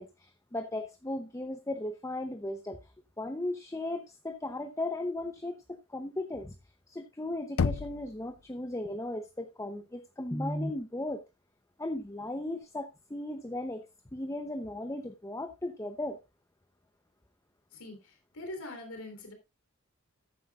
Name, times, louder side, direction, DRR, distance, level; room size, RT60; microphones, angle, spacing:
voice 1, 0.0-2.8 3.2-6.5 6.9-11.2 11.8-13.9 14.1-16.2, left 1 dB, 15° left, 8 dB, 0.8 m, -36 dB
Knock, 7.6-8.5, left 5 dB, 70° left, 0.5 m, -31 dB
voice 2, 17.7-19.3, left 1 dB, 90° left, 4 dB, 3.7 m, -43 dB
14.0 x 9.9 x 2.5 m, 0.23 s
head